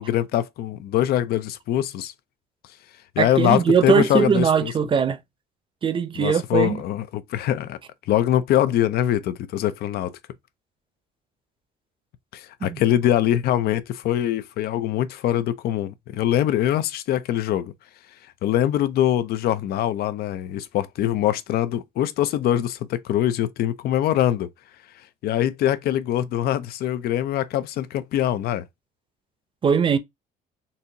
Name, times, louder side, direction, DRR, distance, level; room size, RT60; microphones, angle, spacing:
voice 1, 0.0-2.1 3.2-4.7 6.2-7.8 8.1-10.1 12.3-17.7 18.4-24.5 25.2-28.6, left 12 dB, 65° left, 0.5 m, -23 dB
voice 2, 3.2-5.2 5.8-6.8 12.6-12.8 29.6-30.0, right 6 dB, 30° right, 0.6 m, -20 dB
4.1 x 2.8 x 2.7 m
cardioid pair, 110°, 17 cm